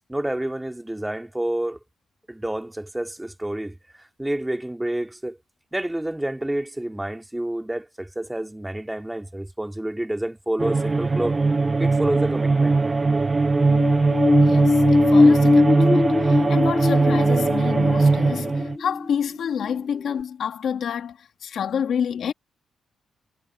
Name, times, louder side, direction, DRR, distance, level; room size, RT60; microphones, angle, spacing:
voice 1, 0.1-1.8 2.3-5.4 5.7-11.4 11.8-12.8, right 1 dB, 10° right, 2.7 m, -29 dB
sound 1, 10.6-18.8, right 3 dB, 25° right, 1.0 m, -20 dB
sound 2, 13.5-19.8 20.2-20.3, left 3 dB, 20° left, 0.3 m, -20 dB
voice 2, 14.4-22.3, left 8 dB, 70° left, 1.7 m, -29 dB
cardioid pair, 100°, 0 cm